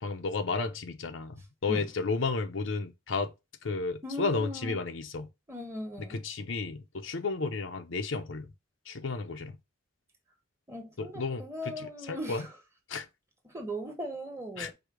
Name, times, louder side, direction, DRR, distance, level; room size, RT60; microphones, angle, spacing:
voice 1, 0.0-3.3 3.6-5.3 6.1-8.5 8.9-9.5 11.0-12.5 12.9-13.1 14.6-14.7, left 4 dB, 80° left, 0.7 m, -33 dB
voice 2, 4.0-4.8 5.5-6.2 10.7-12.5 13.4-14.7, equal, 15° right, 1.3 m, -38 dB
4.9 x 2.3 x 4.8 m
head